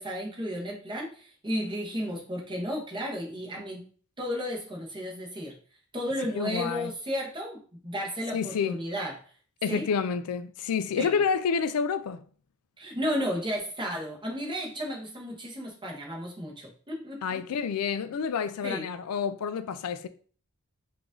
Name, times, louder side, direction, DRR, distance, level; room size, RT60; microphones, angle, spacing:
voice 1, 0.0-3.8 4.2-5.5 5.9-7.6 7.8-9.1 9.7-9.8 11.0-11.2 12.8-17.4 18.6-18.8, equal, 20° right, 1.1 m, -33 dB
voice 2, 6.3-6.9 8.3-8.8 9.6-12.2 17.2-20.1, left 6 dB, 80° left, 0.4 m, -29 dB
4.9 x 2.6 x 3.7 m
head